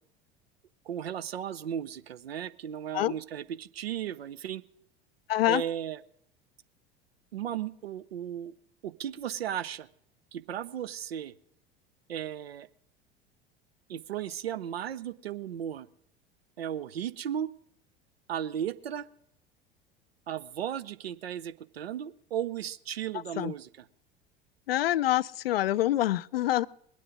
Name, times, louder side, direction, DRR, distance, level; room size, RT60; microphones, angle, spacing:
voice 1, 0.9-4.6 5.5-6.0 7.3-8.5 8.8-9.9 10.3-11.3 12.1-12.7 13.9-15.9 16.6-17.5 18.3-19.1 20.3-23.9, right 10 dB, 75° right, 0.7 m, -35 dB
voice 2, 5.3-5.6 23.4-23.5 24.7-26.7, left 14 dB, 70° left, 0.4 m, -26 dB
21.0 x 8.5 x 5.1 m
figure-of-eight pair, 75°, 31 cm